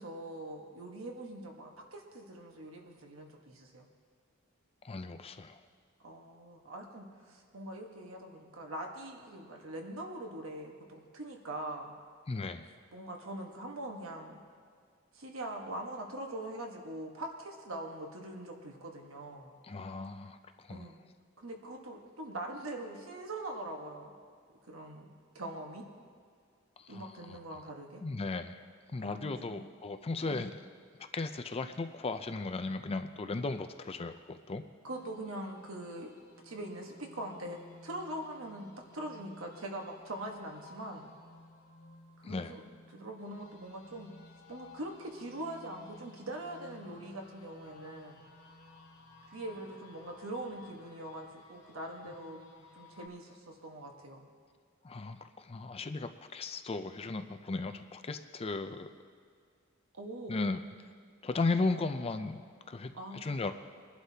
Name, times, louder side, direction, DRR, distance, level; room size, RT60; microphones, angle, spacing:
voice 1, 0.0-3.9 6.0-12.0 12.9-14.5 15.1-19.6 20.7-21.0 21.4-24.1 24.6-25.8 26.9-28.0 29.0-29.6 30.2-30.5 34.8-36.1 36.4-41.1 42.2-42.6 42.9-44.1 44.5-48.3 49.3-52.4 52.7-54.3 59.9-60.4 62.9-63.4, right 1 dB, 80° right, 2 dB, 1.3 m, -43 dB
voice 2, 4.8-5.6 12.3-12.7 19.6-20.9 26.8-27.1 28.0-28.6 28.9-30.5 31.1-34.6 42.2-42.6 52.0-52.1 54.8-58.9 60.3-60.6 61.2-62.4 62.7-63.5, left 3 dB, 30° left, 8 dB, 0.5 m, -36 dB
sound 1, 34.9-53.1, left 2 dB, 80° left, 2.0 m, -56 dB
22.5 x 11.5 x 2.8 m, 2.1 s
head